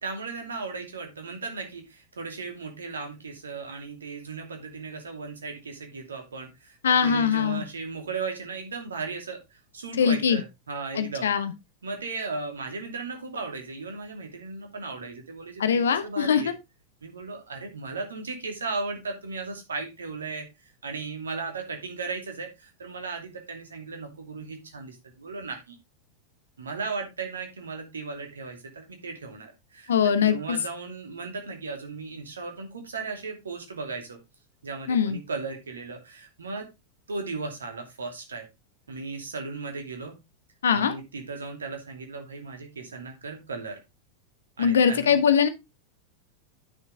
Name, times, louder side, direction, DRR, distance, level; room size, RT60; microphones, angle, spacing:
voice 1, 0.0-11.3 11.8-16.5 17.0-25.7 26.6-29.9 30.2-34.2 34.6-36.7 37.1-38.5 38.9-40.1 40.7-43.8 44.6-45.2, right 4 dB, 70° right, 2.7 m, -36 dB
voice 2, 6.8-7.6 10.0-10.4 10.9-11.5 15.6-16.5 29.9-30.6 34.9-35.2 40.6-40.9 44.6-45.5, left 7 dB, 65° left, 1.0 m, -22 dB
9.9 x 6.6 x 3.4 m
figure-of-eight pair, 90°, 0 cm